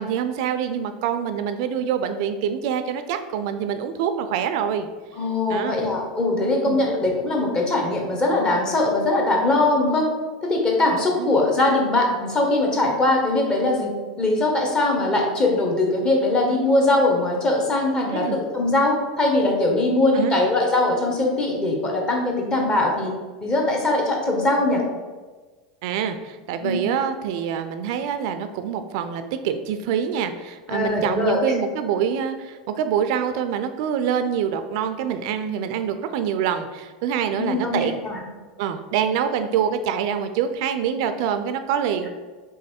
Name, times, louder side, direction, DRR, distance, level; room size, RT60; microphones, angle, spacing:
voice 1, 0.0-4.9 5.5-5.7 6.7-6.8 11.2-11.3 18.1-18.4 20.1-20.4 25.8-38.0 38.6-42.1, right 8 dB, 65° right, 9 dB, 0.3 m, -25 dB
voice 2, 5.1-10.1 10.4-13.9 14.2-23.1 23.4-24.8 26.6-26.8 30.7-31.6 37.4-38.2, left 2 dB, 25° left, 0 dB, 1.0 m, -21 dB
3.5 x 3.1 x 4.2 m, 1.3 s
supercardioid pair, 115°, 3 cm